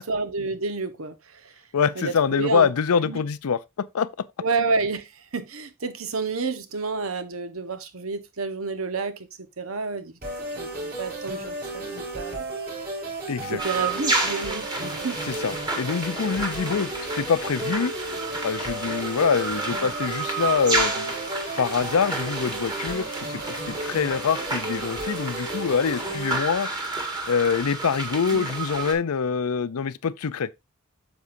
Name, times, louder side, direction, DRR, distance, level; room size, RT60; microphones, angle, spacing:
voice 1, 0.0-1.5 2.0-2.7 3.0-3.2 4.4-10.1 10.6-12.5 13.5-15.4 28.3-28.5, right 4 dB, 70° right, 1.1 m, -30 dB
voice 2, 1.7-4.3 13.3-13.6 15.2-16.9 17.2-17.9 18.4-21.1 21.6-26.7 27.3-30.5, left 6 dB, 85° left, 0.5 m, -25 dB
sound 1, 10.2-26.4, right 2 dB, 45° right, 3.6 m, -34 dB
sound 2, 13.6-28.9, right 3 dB, 20° right, 1.9 m, -31 dB
9.4 x 7.0 x 2.6 m
head